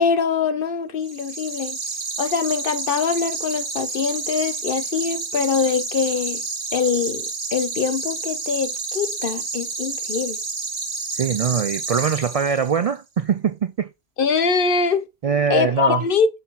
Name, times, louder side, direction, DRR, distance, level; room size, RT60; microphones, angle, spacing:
voice 1, 0.0-1.8 2.2-6.4 6.7-10.4 14.2-15.1 15.5-16.3, left 5 dB, 60° left, 0.9 m, -23 dB
sound 1, 1.0-12.9, right 4 dB, 75° right, 1.6 m, -30 dB
voice 2, 11.1-13.9 15.2-16.0, right 7 dB, 60° right, 0.3 m, -22 dB
8.2 x 4.2 x 3.9 m
omnidirectional pair, 1.1 m